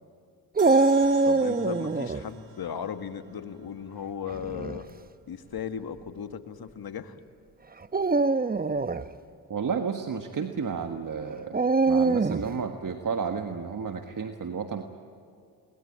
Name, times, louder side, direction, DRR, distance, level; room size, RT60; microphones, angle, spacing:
Dog, 0.6-2.2 4.3-4.8 5.6-5.7 7.8-9.1 11.5-12.5, right 3 dB, 20° right, 0.9 m, -23 dB
sound 1, 0.6-3.9, right 8 dB, 70° right, 1.9 m, -48 dB
voice 1, 1.2-4.9 5.3-7.2, left 7 dB, 55° left, 9 dB, 1.7 m, -36 dB
voice 2, 9.5-14.8, right 6 dB, 45° right, 6 dB, 1.6 m, -32 dB
23.0 x 20.5 x 8.8 m, 2.3 s
supercardioid pair, 55°, 43 cm